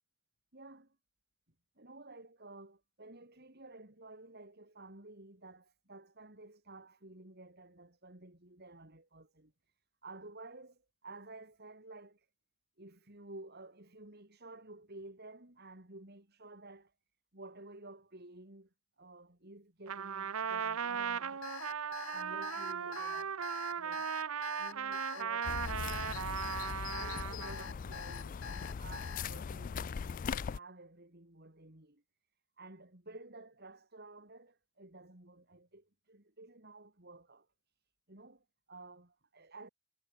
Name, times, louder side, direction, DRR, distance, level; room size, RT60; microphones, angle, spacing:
voice 1, 0.5-1.0 1.8-9.5 10.0-12.3 12.8-16.9 17.3-21.5 22.1-23.4 23.8-24.1 24.6-26.1 26.9-32.0 32.6-37.5 38.1-39.7, right 2 dB, 50° right, 3.3 m, -53 dB
Trumpet, 19.9-27.7, right 7 dB, 90° right, 0.8 m, -37 dB
Alarm, 21.4-29.2, left 7 dB, 75° left, 1.3 m, -46 dB
sound 1, 25.4-30.6, left 6 dB, 40° left, 0.3 m, -40 dB
head